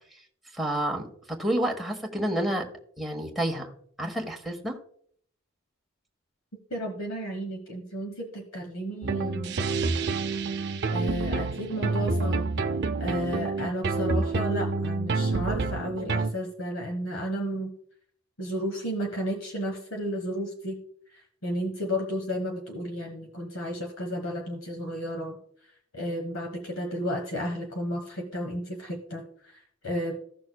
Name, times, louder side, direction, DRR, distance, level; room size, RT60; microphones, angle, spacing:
voice 1, 0.5-2.6 3.0-3.7 4.0-4.7, right 1 dB, ahead, -1 dB, 1.4 m, -29 dB
voice 2, 6.7-9.6 10.9-12.5 13.0-17.7 18.4-20.8 21.4-25.4 25.9-29.2 29.8-30.2, equal, 75° left, 2 dB, 1.3 m, -32 dB
sound 1, 9.0-16.3, right 3 dB, 55° right, 0.6 m, -28 dB
16.0 x 6.2 x 2.3 m, 0.64 s
head